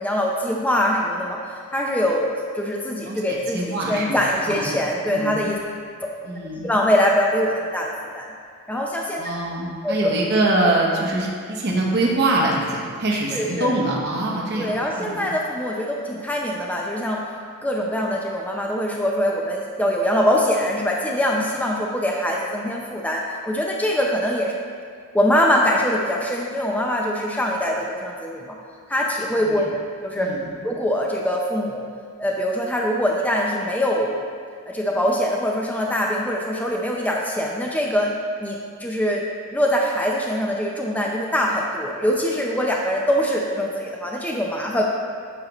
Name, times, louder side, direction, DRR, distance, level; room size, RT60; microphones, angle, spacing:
voice 1, 0.0-2.3 2.6-5.6 6.0-6.2 6.6-8.3 8.7-9.2 9.8-10.1 13.3-13.7 14.5-17.2 17.6-24.5 25.1-28.6 28.9-29.7 30.0-30.3 30.6-31.9 32.2-34.3 34.7-38.1 38.4-39.2 39.5-44.8, equal, 5° left, -1 dB, 0.5 m, -23 dB
voice 2, 3.1-4.8 5.1-5.5 6.2-6.7 9.2-15.2 29.4-29.5 30.1-30.5, right 2 dB, 50° right, -3 dB, 0.9 m, -24 dB
9.6 x 6.5 x 3.0 m, 2.1 s
head